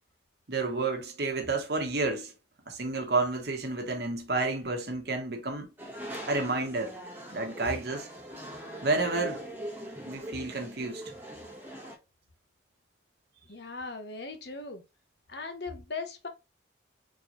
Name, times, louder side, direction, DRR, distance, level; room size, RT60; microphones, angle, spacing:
voice 1, 0.5-2.3 2.7-5.7 6.3-6.9 7.3-8.1 8.8-9.5 10.1-11.0, right 3 dB, 55° right, 1.2 m, -30 dB
sound 1, 5.8-12.0, right 1 dB, 10° right, 1.2 m, -42 dB
voice 2, 13.5-14.8 15.3-16.3, left 3 dB, 55° left, 1.0 m, -39 dB
4.2 x 3.1 x 3.9 m
head